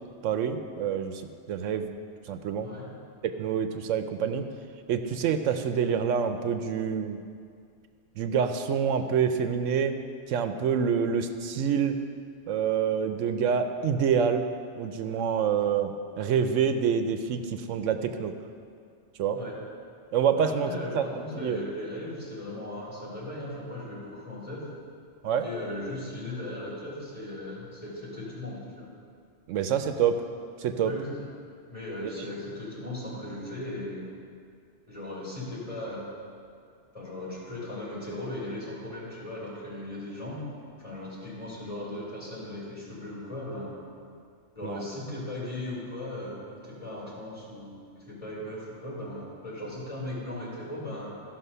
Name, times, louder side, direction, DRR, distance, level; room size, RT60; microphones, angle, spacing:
voice 1, 0.2-1.2 1.5-1.9 2.3-2.7 3.4-4.5 4.9-7.2 8.2-9.9 10.3-12.0 12.5-14.5 14.8-18.3 19.2-19.4 20.1-21.6 25.2-25.5 29.5-30.2 30.6-30.9 44.6-44.8, right 7 dB, 80° right, 8 dB, 0.9 m, -27 dB
voice 2, 20.4-24.7 25.4-28.9 30.8-31.3 31.7-34.0 34.9-36.1 36.9-40.4 40.8-43.7 44.5-51.1, left 1 dB, 25° left, -7 dB, 3.4 m, -37 dB
14.0 x 5.9 x 5.5 m, 2.3 s
omnidirectional pair, 1.3 m